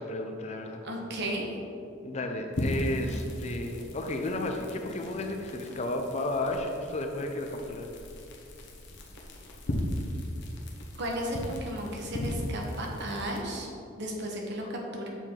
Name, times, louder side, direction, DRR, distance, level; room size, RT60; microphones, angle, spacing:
voice 1, 0.0-0.8 2.0-7.9 14.6-14.7, left 1 dB, 35° left, 4 dB, 0.5 m, -33 dB
voice 2, 0.8-1.5 11.0-13.7 14.0-15.1, right 1 dB, 60° right, 0 dB, 1.0 m, -34 dB
sound 1, 2.5-13.4, left 1 dB, 60° left, 0.9 m, -37 dB
6.8 x 4.6 x 3.7 m, 2.6 s
head